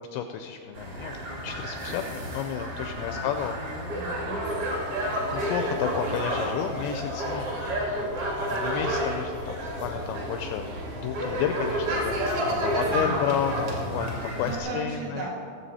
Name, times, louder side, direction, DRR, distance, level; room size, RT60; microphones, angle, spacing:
voice 1, 0.1-1.2 1.4-3.6 5.3-7.5 7.9-8.1 8.5-10.7 11.0-15.3, left 9 dB, 85° left, 6 dB, 2.6 m, -32 dB
sound 1, 0.7-14.6, equal, 40° right, 2.2 m, -30 dB
voice 2, 3.0-5.3 12.8-13.3 14.4-15.3, right 3 dB, 80° right, -4 dB, 5.0 m, -38 dB
sound 2, 4.3-6.8 8.5-8.7 10.6-11.2, left 5 dB, 60° right, 2.1 m, -43 dB
19.0 x 7.6 x 4.2 m, 2.3 s
omnidirectional pair, 5.6 m